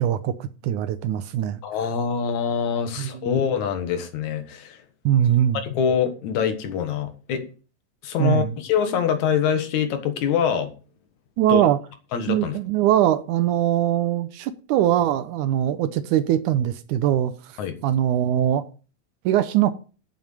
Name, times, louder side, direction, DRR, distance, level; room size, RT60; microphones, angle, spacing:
voice 1, 0.0-1.6 3.0-3.4 5.1-5.6 8.2-8.5 11.4-11.8 12.3-17.3 17.8-18.6 19.3-19.7, right 11 dB, 75° right, 2.0 m, -21 dB
voice 2, 1.6-4.8 5.6-7.4 8.0-10.7 11.5-11.6 12.1-12.5 17.6-17.8, left 7 dB, 65° left, 2.5 m, -24 dB
7.8 x 7.3 x 6.7 m
omnidirectional pair, 3.8 m